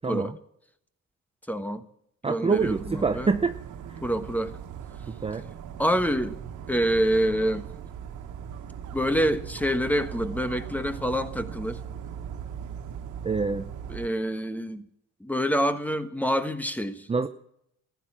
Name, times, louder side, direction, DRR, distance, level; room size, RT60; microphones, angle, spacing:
voice 1, 0.0-0.3 2.2-3.6 3.9-4.0 5.2-5.5 13.2-13.6 17.1-17.3, right 4 dB, 20° right, 0.7 m, -26 dB
voice 2, 1.5-1.9 2.3-3.3 4.0-4.5 5.8-6.4 6.7-7.7 8.9-11.8 13.9-14.9 15.2-17.1, equal, 5° left, 1.2 m, -26 dB
Dog, 2.6-14.1, right 8 dB, 80° right, 1.5 m, -39 dB
15.0 x 11.0 x 7.6 m
cardioid pair, 90°, 30 cm